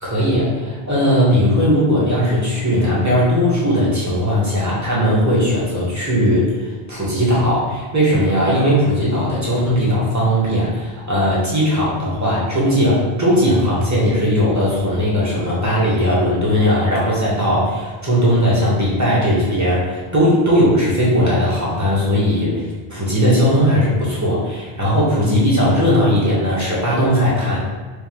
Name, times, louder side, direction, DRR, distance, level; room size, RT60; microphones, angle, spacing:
voice 1, 0.0-27.6, equal, 15° right, -7 dB, 1.2 m, -18 dB
4.7 x 2.4 x 3.6 m, 1.4 s
omnidirectional pair, 1.1 m